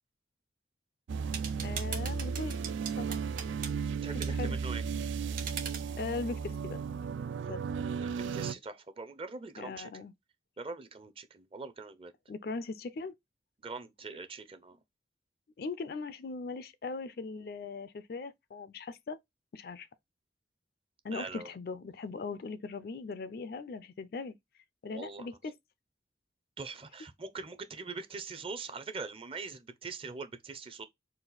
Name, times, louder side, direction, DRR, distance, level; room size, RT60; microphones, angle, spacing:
sound 1, 1.1-8.5, right 6 dB, 85° right, 0.3 m, -35 dB
sound 2, 1.3-3.7 4.2-4.3 5.4-5.9, right 7 dB, 45° right, 1.1 m, -40 dB
voice 1, 1.6-2.6 3.0-3.2 4.1-4.6 6.0-6.8 7.5-7.6 8.0-8.1 9.6-10.1 12.3-13.1 15.6-19.2 19.5-19.9 21.0-24.4 24.8-25.6, left 4 dB, 50° left, 0.4 m, -39 dB
voice 2, 4.0-4.8 8.0-10.1 10.6-12.1 13.6-14.8 21.1-21.5 24.9-25.3 26.6-30.9, right 4 dB, 30° right, 0.5 m, -42 dB
4.1 x 2.4 x 3.8 m
head